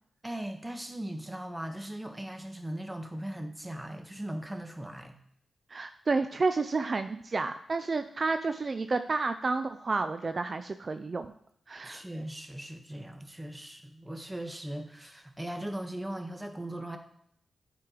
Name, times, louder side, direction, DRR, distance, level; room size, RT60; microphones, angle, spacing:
voice 1, 0.2-5.2 11.8-17.0, right 1 dB, 15° right, 5 dB, 1.4 m, -39 dB
voice 2, 5.7-11.3 11.7-12.0, right 3 dB, 50° right, 9 dB, 0.4 m, -30 dB
8.7 x 4.6 x 5.0 m, 0.68 s
supercardioid pair, 45°, 0 cm